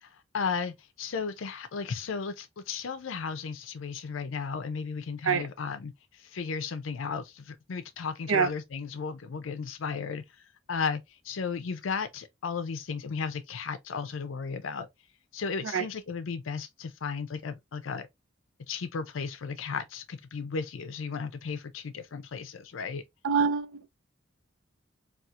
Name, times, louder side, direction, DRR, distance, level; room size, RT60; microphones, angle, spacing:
voice 1, 0.0-10.2 10.7-14.9 15.3-18.1 18.7-23.0, left 5 dB, 75° left, 0.5 m, -35 dB
voice 2, 23.2-23.9, right 6 dB, 90° right, 0.5 m, -25 dB
4.2 x 2.4 x 2.4 m
head